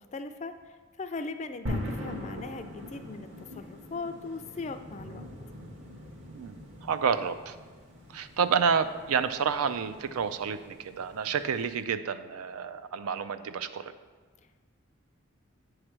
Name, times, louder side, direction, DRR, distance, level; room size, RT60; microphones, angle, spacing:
voice 1, 0.0-5.3, left 3 dB, 30° left, 9 dB, 0.3 m, -39 dB
sound 1, 1.7-11.8, left 1 dB, 55° right, 1.3 m, -42 dB
voice 2, 6.2-7.6 8.1-13.9, right 6 dB, 85° right, 12 dB, 0.4 m, -29 dB
8.6 x 3.2 x 6.0 m, 1.4 s
head